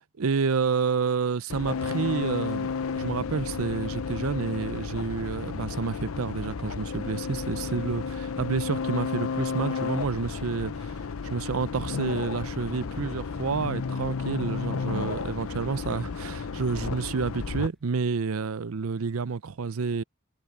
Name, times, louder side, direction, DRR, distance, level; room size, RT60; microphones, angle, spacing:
voice 1, 0.2-2.7 2.9-11.0 11.2-20.0, right 5 dB, 75° right, 0.6 m, -29 dB
sound 1, 1.5-17.7, left 5 dB, 75° left, 0.6 m, -32 dB
Wind instrument woodwind instrument, 6.3-11.4, left 3 dB, 25° left, 7.4 m, -61 dB
sound 2, 17.7-17.9, equal, ahead, 6.8 m, -51 dB
head